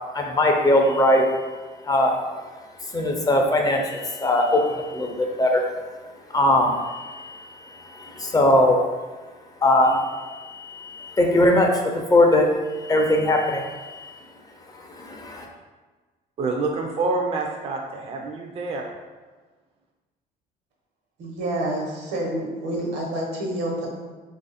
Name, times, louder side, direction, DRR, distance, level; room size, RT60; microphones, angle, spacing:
voice 1, 0.1-1.5 1.8-2.1 2.9-5.6 6.3-8.8 9.6-14.1 14.9-15.5, left 1 dB, 20° left, 2 dB, 0.5 m, -21 dB
voice 2, 16.4-18.9, right 3 dB, 35° right, 1 dB, 0.4 m, -27 dB
voice 3, 21.2-23.9, right 1 dB, 80° right, -1 dB, 1.0 m, -28 dB
3.3 x 2.5 x 4.0 m, 1.3 s
cardioid pair, 110°, 17 cm